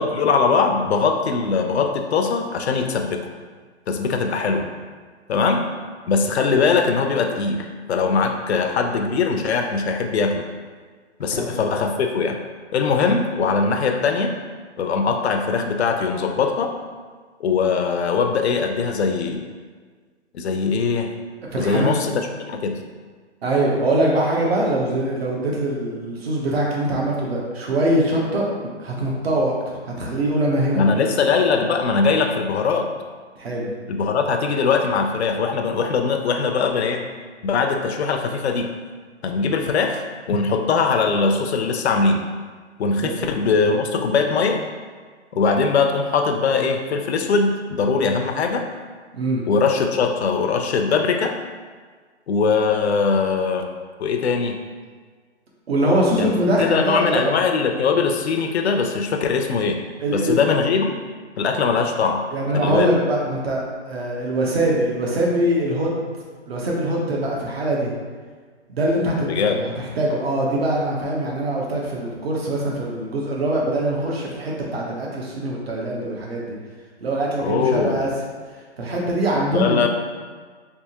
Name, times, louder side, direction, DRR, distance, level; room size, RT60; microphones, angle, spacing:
voice 1, 0.0-3.2 3.9-4.7 5.3-5.6 6.1-10.5 11.2-12.4 12.7-14.4 14.8-16.7 17.4-19.4 20.3-21.1 21.6-22.1 22.5-22.8 30.8-32.9 33.9-37.0 37.4-38.7 39.2-40.0 40.3-42.2 42.8-44.6 45.3-48.7 49.5-51.4 52.3-53.7 54.0-54.6 56.2-59.8 60.1-60.9 61.4-62.2 62.5-62.9 69.3-69.6 77.4-78.1 79.5-79.9, left 5 dB, 65° left, 4 dB, 0.5 m, -21 dB
voice 2, 21.5-21.9 23.4-28.5 28.8-30.8 33.4-33.7 43.0-43.1 49.1-49.4 55.7-57.3 60.0-60.4 62.3-65.9 66.5-67.9 68.7-76.5 77.0-78.1 78.8-79.8, right 1 dB, 60° right, -2 dB, 1.0 m, -23 dB
3.5 x 2.8 x 2.8 m, 1.5 s
hypercardioid pair, 155°, 35 cm